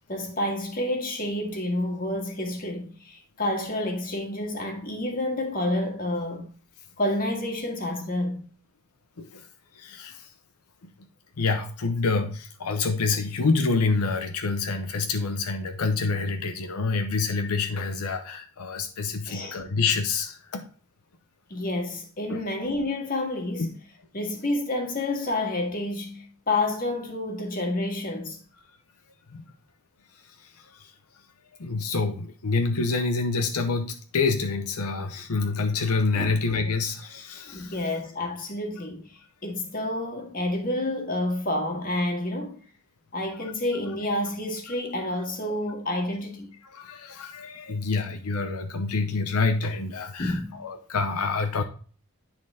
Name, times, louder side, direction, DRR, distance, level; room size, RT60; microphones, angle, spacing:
voice 1, 0.1-6.5 7.0-8.4 19.2-19.6 21.5-23.7 24.1-28.4 36.2-36.4 37.5-39.0 39.4-42.6 43.1-46.5 50.2-50.6, left 1 dB, 40° left, 1.7 m, -29 dB
voice 2, 9.7-10.3 11.4-20.6 22.3-22.4 23.6-23.7 29.3-29.4 30.4-30.9 31.6-37.8 43.4-43.5 46.7-51.6, left 4 dB, 85° left, 0.7 m, -27 dB
9.9 x 4.4 x 3.5 m
head